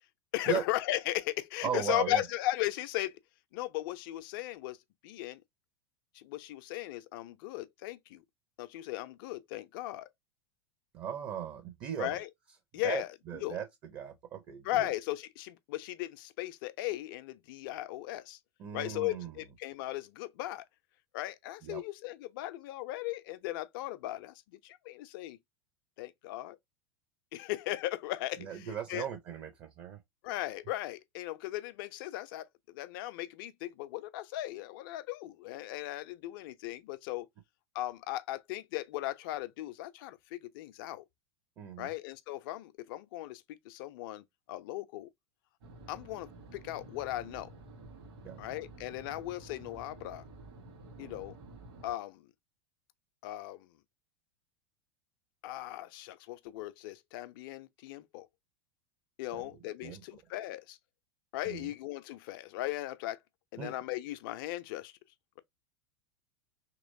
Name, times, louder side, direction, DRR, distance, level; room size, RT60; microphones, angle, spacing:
voice 1, 0.3-3.2 3.5-4.8 5.0-5.4 6.1-8.2 8.6-10.1 12.0-12.3 12.7-13.1 13.4-13.6 14.6-18.4 18.7-20.7 21.1-25.4 26.0-26.6 27.3-29.1 30.2-37.3 37.7-41.0 41.8-45.1 45.9-47.5 48.4-50.2 51.0-51.4 51.8-52.3 53.2-53.7 55.4-58.3 59.2-60.8 61.3-63.2 63.5-64.9, left 15 dB, 50° left, 0.4 m, -37 dB
voice 2, 1.6-2.2 10.9-12.2 12.8-14.9 18.6-19.4 21.6-21.8 28.4-30.0 41.6-41.9 48.2-48.4 51.0-51.3 59.3-59.5 59.8-60.0 61.4-61.7 63.6-63.7, right 8 dB, 35° right, 0.7 m, -38 dB
sound 1, 45.6-51.9, right 2 dB, 60° right, 1.5 m, -51 dB
3.0 x 2.9 x 2.6 m
figure-of-eight pair, 85°, 14 cm